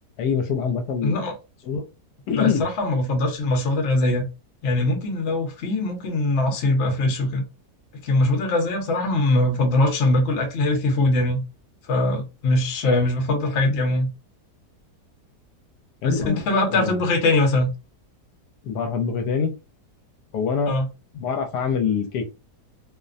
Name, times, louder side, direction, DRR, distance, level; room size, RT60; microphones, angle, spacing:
voice 1, 0.2-1.2 1.7-1.8 2.3-2.6 16.0-16.4 16.7-16.9 18.6-19.5 20.3-20.7 21.1-22.2, left 6 dB, 80° left, 1.2 m, -24 dB
voice 2, 1.0-1.3 2.3-4.3 4.6-7.4 8.0-11.4 11.9-14.1 16.0-17.7 20.7-20.9, left 2 dB, 55° left, 0.9 m, -22 dB
2.8 x 2.1 x 2.4 m
omnidirectional pair, 1.8 m